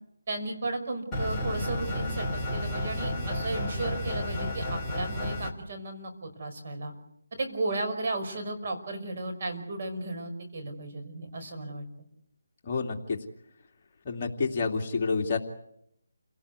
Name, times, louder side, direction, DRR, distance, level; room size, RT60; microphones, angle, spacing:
voice 1, 0.3-6.9 7.4-11.8, right 2 dB, 45° right, 4 dB, 5.5 m, -34 dB
sound 1, 1.1-5.5, left 1 dB, 5° left, 2.7 m, -31 dB
voice 2, 12.6-13.2 14.0-15.4, left 4 dB, 30° left, 1 dB, 2.6 m, -28 dB
29.5 x 18.5 x 8.3 m, 0.76 s
figure-of-eight pair, 165°, 0 cm